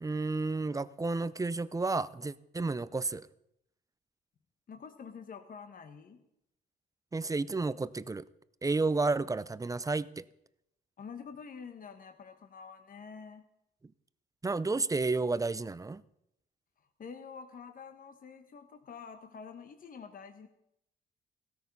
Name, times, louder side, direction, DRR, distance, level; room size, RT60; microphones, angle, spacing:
voice 1, 0.0-3.3 7.1-8.3 8.6-10.3 14.4-16.0, right 3 dB, 15° right, 0.5 m, -31 dB
voice 2, 4.7-6.2 11.0-13.4 17.0-20.5, left 6 dB, 45° left, 1.2 m, -47 dB
16.0 x 13.5 x 5.4 m
cardioid pair, 90°, 20 cm